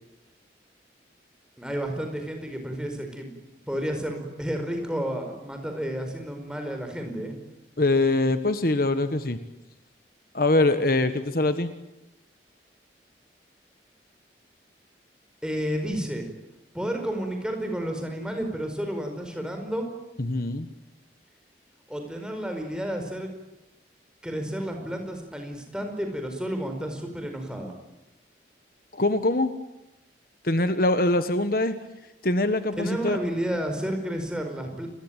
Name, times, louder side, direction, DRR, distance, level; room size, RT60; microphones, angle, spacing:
voice 1, 1.6-3.3 3.7-7.3 15.4-16.3 16.7-19.9 21.9-23.3 24.2-27.7 32.8-34.9, equal, 5° right, 4 dB, 4.9 m, -31 dB
voice 2, 7.8-9.4 10.3-11.7 20.2-20.7 28.9-29.5 30.4-31.8 32.2-33.2, left 2 dB, 50° left, 10 dB, 1.4 m, -23 dB
29.0 x 22.5 x 9.0 m, 0.91 s
head